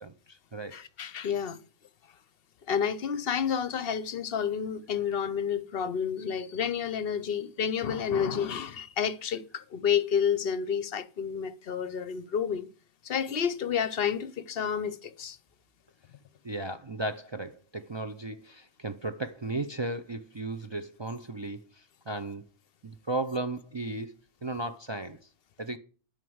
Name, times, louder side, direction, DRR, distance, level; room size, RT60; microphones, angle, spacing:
voice 1, 0.0-0.8 16.4-22.4 22.8-24.1 24.4-25.3 25.6-25.8, right 2 dB, 40° right, 0.4 m, -35 dB
voice 2, 0.7-1.6 2.7-12.7 13.0-15.4, left 7 dB, 55° left, 0.8 m, -30 dB
11.0 x 5.1 x 7.8 m
omnidirectional pair, 1.4 m